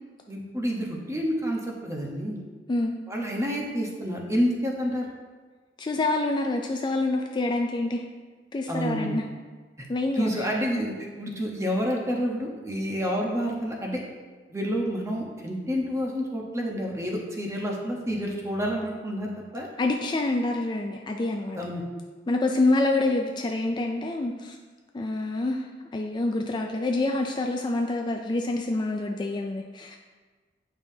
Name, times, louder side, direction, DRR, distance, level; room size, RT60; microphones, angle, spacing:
voice 1, 0.3-2.4 3.1-5.1 8.7-9.2 10.1-14.0 14.5-19.7 21.5-21.8, equal, 15° right, -1 dB, 1.0 m, -29 dB
voice 2, 5.8-8.0 8.5-9.2 9.9-10.5 19.8-21.6 22.3-24.6 24.9-25.7 25.9-30.0, left 2 dB, 25° left, 2 dB, 0.3 m, -26 dB
8.9 x 5.5 x 2.8 m, 1.4 s
head